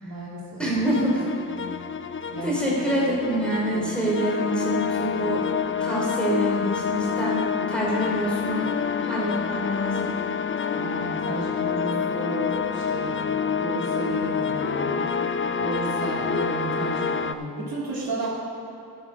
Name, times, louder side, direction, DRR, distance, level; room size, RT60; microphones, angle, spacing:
voice 1, 0.0-0.6 2.3-2.7 10.7-13.2 13.6-14.9 15.6-18.3, right 3 dB, 65° right, -6 dB, 2.7 m, -32 dB
voice 2, 0.6-1.3 2.4-5.4 5.8-7.4 7.7-8.7 9.0-10.1, right 1 dB, 5° left, -5 dB, 3.1 m, -26 dB
sound 1, 0.7-17.3, left 6 dB, 35° left, 0.5 m, -27 dB
13.0 x 6.4 x 6.2 m, 2.6 s
cardioid pair, 85°, 38 cm